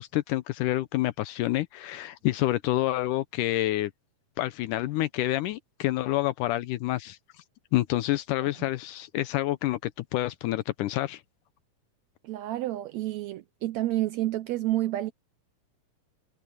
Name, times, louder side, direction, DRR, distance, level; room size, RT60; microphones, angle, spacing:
voice 1, 0.0-3.9 4.4-7.2 7.7-11.2, left 16 dB, 80° left, 2.2 m, -28 dB
voice 2, 12.2-15.1, right 15 dB, 85° right, 1.6 m, -29 dB
omnidirectional pair, 3.8 m